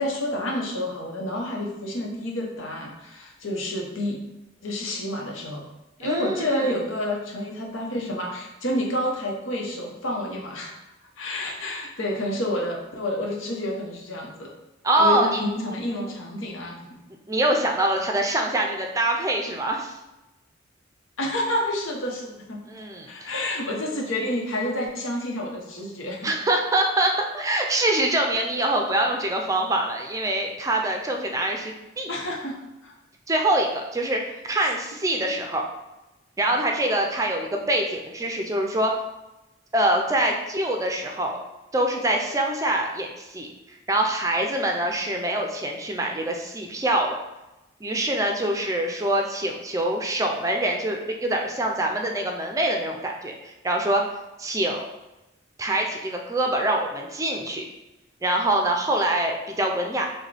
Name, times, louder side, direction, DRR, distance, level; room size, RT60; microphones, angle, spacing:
voice 1, 0.0-4.2 4.6-5.7 6.0-10.7 11.2-14.5 15.0-17.0 21.2-22.6 23.1-26.3 32.1-32.9 35.2-35.4, left 1 dB, 90° left, -1 dB, 1.0 m, -29 dB
voice 2, 6.0-6.8 14.8-15.4 17.3-19.9 22.7-23.3 26.2-32.1 33.3-35.6 36.4-38.9 39.7-41.4 41.7-43.5 43.9-47.2 47.8-54.0 54.4-54.9 55.6-57.6 58.2-60.1, right 1 dB, 15° right, 2 dB, 0.4 m, -24 dB
6.2 x 2.2 x 3.3 m, 0.99 s
head